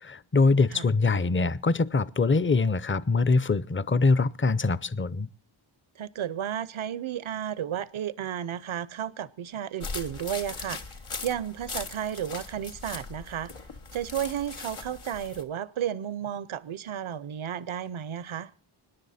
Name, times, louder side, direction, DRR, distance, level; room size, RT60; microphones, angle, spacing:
voice 1, 0.0-5.3, left 3 dB, 25° left, 0.6 m, -23 dB
voice 2, 6.0-10.8 11.2-13.5 13.9-18.5, right 9 dB, 75° right, 0.7 m, -33 dB
sound 1, 9.8-15.4, left 4 dB, 90° left, 1.7 m, -39 dB
25.0 x 10.5 x 4.2 m
wide cardioid pair, 75°, 49 cm